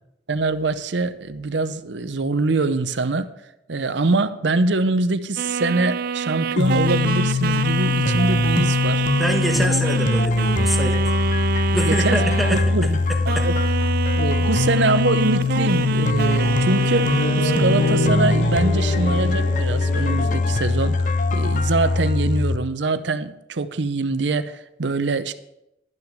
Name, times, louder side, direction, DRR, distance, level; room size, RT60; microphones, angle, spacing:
voice 1, 0.3-3.3 3.7-9.1 11.8-12.2 12.5-13.0 13.4-13.5 14.1-25.3, right 3 dB, 70° right, 0.7 m, -24 dB
sound 1, 5.4-12.9 13.3-18.1, right 6 dB, 50° right, 0.3 m, -26 dB
sound 2, 6.6-22.6, left 3 dB, 40° left, 0.5 m, -22 dB
voice 2, 9.2-11.0 11.7-13.5, equal, ahead, 1.2 m, -25 dB
sound 3, 15.7-20.9, left 1 dB, 80° left, 2.9 m, -27 dB
12.0 x 6.0 x 7.6 m
head